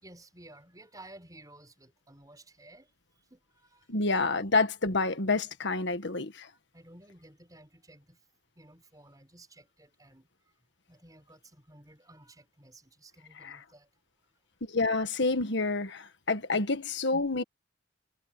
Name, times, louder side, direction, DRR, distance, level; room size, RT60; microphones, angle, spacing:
voice 1, 0.0-2.9 3.3-3.9 6.7-8.2 8.6-10.3 10.9-13.9 16.5-16.7, right 1 dB, 20° right, 5.3 m, -54 dB
voice 2, 3.9-6.5 13.4-13.6 14.7-17.4, left 3 dB, 65° left, 1.7 m, -28 dB
head